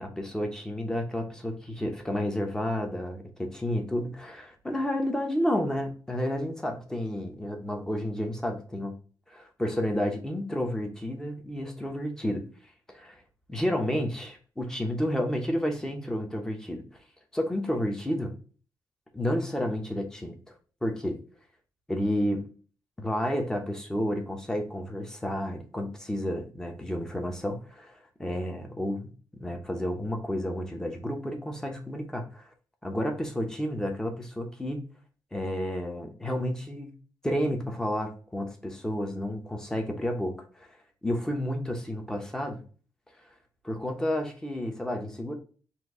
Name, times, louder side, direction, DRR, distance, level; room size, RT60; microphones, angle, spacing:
voice 1, 0.0-8.9 9.3-12.5 12.9-13.2 13.5-16.8 17.3-18.3 19.1-20.4 20.8-21.2 21.9-22.5 23.0-32.5 32.8-34.8 35.3-37.0 37.2-40.7 41.0-42.6 43.6-45.4, equal, 10° left, 3 dB, 0.9 m, -31 dB
4.4 x 2.7 x 3.7 m, 0.39 s
wide cardioid pair, 150°, 7 cm